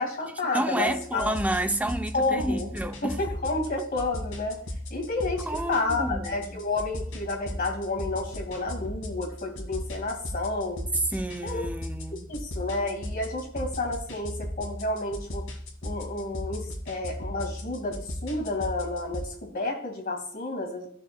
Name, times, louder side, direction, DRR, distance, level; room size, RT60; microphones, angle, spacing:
voice 1, 0.0-1.3 2.1-2.7 3.0-4.6 4.9-10.9 11.4-11.7 12.3-15.5 15.8-20.9, left 2 dB, 45° left, 2.1 m, -30 dB
voice 2, 0.5-3.2 5.5-6.6 11.1-12.3, right 1 dB, 5° right, 0.4 m, -30 dB
sound 1, 0.8-19.3, left 1 dB, 80° left, 2.0 m, -37 dB
15.0 x 6.4 x 2.3 m
head